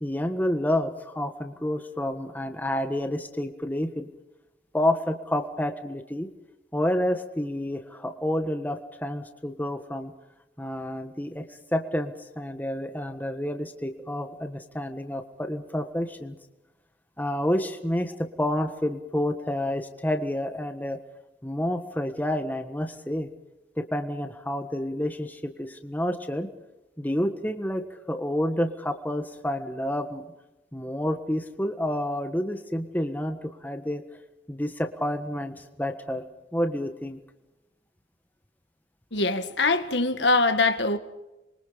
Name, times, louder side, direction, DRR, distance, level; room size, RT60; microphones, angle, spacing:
voice 1, 0.0-4.1 4.7-6.3 6.7-10.1 10.6-16.4 17.2-21.0 21.4-23.3 23.8-26.5 27.0-30.2 30.7-34.0 34.5-36.2 36.5-37.2, left 1 dB, 10° left, 1.5 m, -29 dB
voice 2, 39.1-41.0, left 3 dB, 80° left, 1.8 m, -23 dB
27.0 x 23.5 x 5.1 m
head